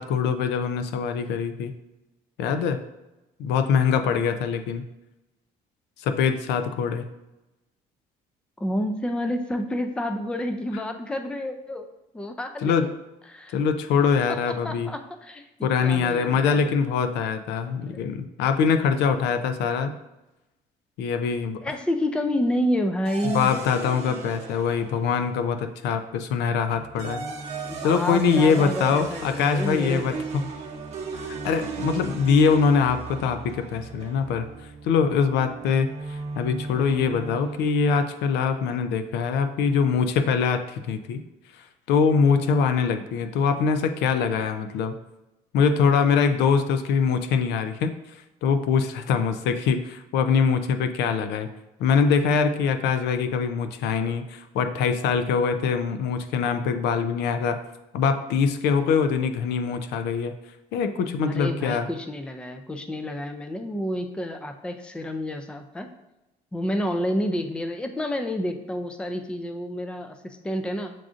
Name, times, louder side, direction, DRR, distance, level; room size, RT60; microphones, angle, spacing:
voice 1, 0.0-1.7 2.4-2.8 3.4-4.8 6.0-7.1 12.6-12.9 13.5-14.9 15.6-19.9 21.0-21.6 23.2-27.2 27.8-30.1 31.1-34.5 34.8-41.2 41.9-44.9 45.5-48.0 48.4-51.5 51.8-57.6 57.9-60.3 60.7-61.9, left 6 dB, 80° left, 8 dB, 0.4 m, -23 dB
voice 2, 8.6-11.8 12.1-12.9 13.3-13.6 14.5-16.7 17.9-18.0 21.6-23.5 27.6-30.5 61.2-65.9 66.5-70.9, equal, 5° left, 7 dB, 0.3 m, -29 dB
sound 1, 23.0-25.6 26.7-37.8, right 4 dB, 40° right, 0.8 m, -36 dB
7.4 x 2.5 x 2.4 m, 0.98 s
cardioid pair, 110°, 17 cm